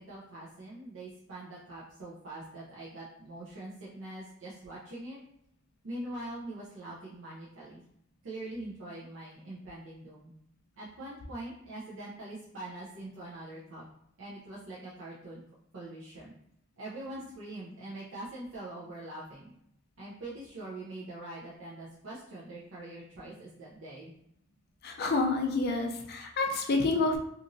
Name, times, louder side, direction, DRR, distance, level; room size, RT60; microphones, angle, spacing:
voice 1, 0.0-5.2 5.8-7.8 8.2-10.3 10.8-13.8 14.2-15.4 15.7-16.4 16.8-19.5 20.0-24.1, right 1 dB, 80° right, -7 dB, 0.6 m, -43 dB
voice 2, 24.8-27.2, left 3 dB, 50° left, 2 dB, 0.4 m, -28 dB
2.9 x 2.5 x 2.6 m, 0.73 s
head